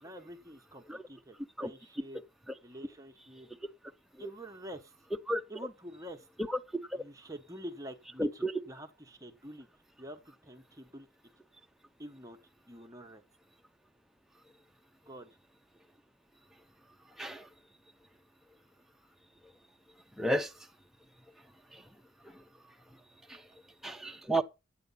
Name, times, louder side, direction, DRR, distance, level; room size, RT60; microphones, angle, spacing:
voice 1, 0.0-2.2 2.6-3.5 4.2-4.9 5.5-6.3 7.0-9.7 10.0-11.1 12.0-12.4 12.7-13.2 15.1-15.3, equal, 15° right, 0.9 m, -47 dB
voice 2, 8.2-8.5 17.2-17.5 20.2-20.5 21.7-21.8 23.3-23.4 23.8-24.4, right 1 dB, ahead, 0.6 m, -32 dB
10.5 x 8.1 x 5.5 m
head